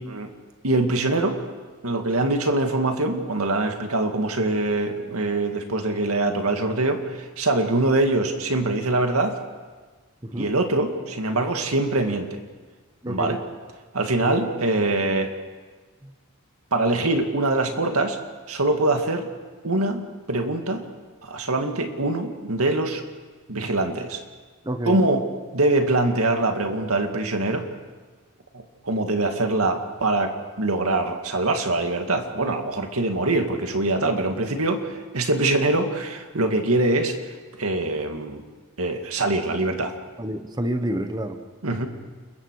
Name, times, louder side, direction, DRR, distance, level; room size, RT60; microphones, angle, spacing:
voice 1, 0.6-1.4 1.8-9.4 10.4-12.4 13.1-13.4 13.9-15.3 16.7-18.2 18.5-19.3 19.6-20.9 21.2-23.0 23.5-24.2 24.9-25.2 25.5-27.6 28.8-30.3 30.6-37.1 37.6-38.4 38.8-39.9 41.6-41.9, right 2 dB, 90° right, 5 dB, 2.2 m, -23 dB
voice 2, 10.2-10.5 13.0-13.4 14.2-14.4 16.0-16.1 24.6-25.0 40.2-41.4, right 1 dB, 20° right, 7 dB, 1.2 m, -29 dB
29.0 x 22.0 x 4.8 m, 1.4 s
head